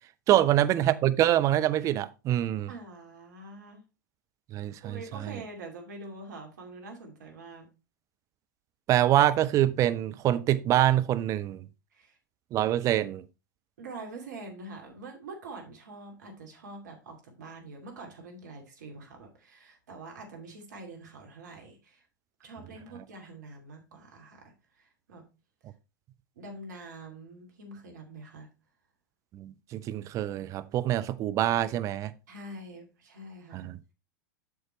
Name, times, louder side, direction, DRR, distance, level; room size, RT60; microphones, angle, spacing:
voice 1, 0.3-2.7 4.5-5.3 8.9-11.7 12.5-13.2 29.3-32.1 33.5-33.8, right 12 dB, 30° right, 0.6 m, -25 dB
voice 2, 2.7-3.8 4.8-7.7 11.9-12.2 13.8-22.0 22.4-25.2 26.4-28.5 32.3-33.7, right 2 dB, 65° right, 2.4 m, -45 dB
8.3 x 6.6 x 3.0 m
figure-of-eight pair, 90°, 10 cm